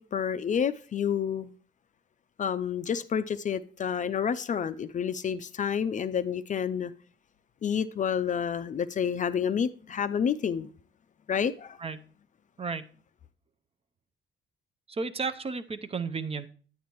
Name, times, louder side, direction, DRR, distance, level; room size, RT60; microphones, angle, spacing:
voice 1, 0.0-1.5 2.4-6.9 7.6-10.7 11.3-11.8, left 7 dB, 40° left, 0.4 m, -29 dB
voice 2, 14.9-16.5, right 4 dB, 30° right, 0.5 m, -33 dB
9.3 x 8.4 x 3.0 m
cardioid pair, 90°, 20 cm